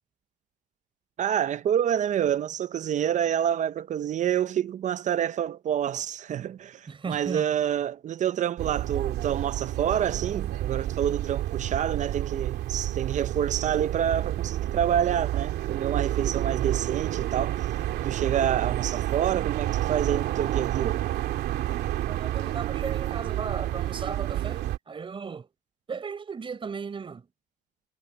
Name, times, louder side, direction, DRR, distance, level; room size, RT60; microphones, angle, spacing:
voice 1, 1.2-17.6 18.0-21.0, right 9 dB, 45° right, 0.6 m, -27 dB
voice 2, 6.9-7.5 22.0-25.5 25.9-27.3, right 5 dB, 30° right, 4.1 m, -36 dB
sound 1, 8.6-24.8, right 13 dB, 75° right, 2.4 m, -29 dB
cardioid pair, 110°, 17 cm